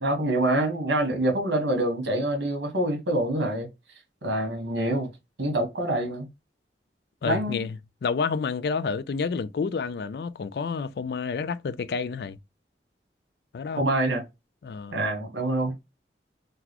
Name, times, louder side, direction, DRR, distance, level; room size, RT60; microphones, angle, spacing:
voice 1, 0.0-3.7 4.2-5.1 5.4-6.3 7.2-7.6 13.8-14.2 14.9-15.8, right 1 dB, 85° right, 1.3 m, -26 dB
voice 2, 7.2-12.4 13.5-13.9 14.6-15.0, left 5 dB, 60° left, 0.3 m, -29 dB
3.9 x 2.3 x 2.9 m
head